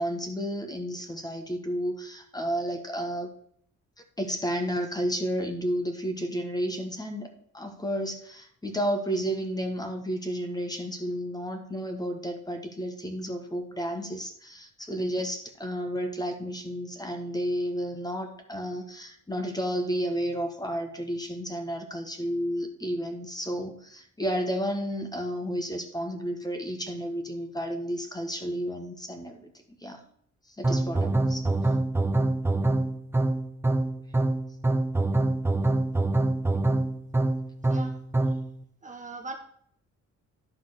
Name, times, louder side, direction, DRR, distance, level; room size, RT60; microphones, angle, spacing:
voice 1, 0.0-3.3 4.2-29.5 29.8-30.0 30.5-31.5, equal, 15° left, 5 dB, 1.5 m, -32 dB
sound 1, 30.6-38.5, right 2 dB, 10° right, 0.7 m, -25 dB
voice 2, 38.8-39.3, right 3 dB, 25° right, 3 dB, 1.4 m, -40 dB
11.0 x 3.8 x 6.6 m, 0.63 s
cardioid pair, 90°, 30 cm